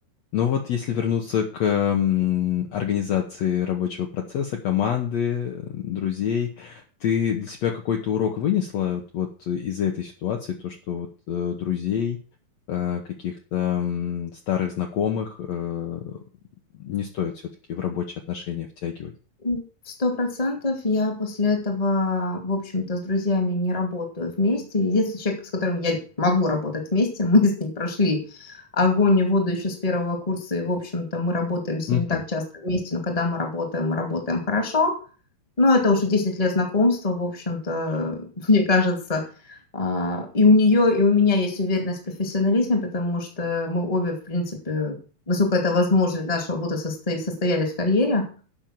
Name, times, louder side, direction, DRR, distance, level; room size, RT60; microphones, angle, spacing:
voice 1, 0.3-12.2 12.7-16.2 16.8-17.3 17.7-19.1 31.9-32.2, left 9 dB, 60° left, 2 dB, 1.9 m, -26 dB
voice 2, 19.4-35.0 35.6-45.0 45.3-48.3, left 3 dB, 15° left, 4 dB, 1.6 m, -23 dB
8.8 x 6.0 x 7.6 m, 0.37 s
omnidirectional pair, 4.2 m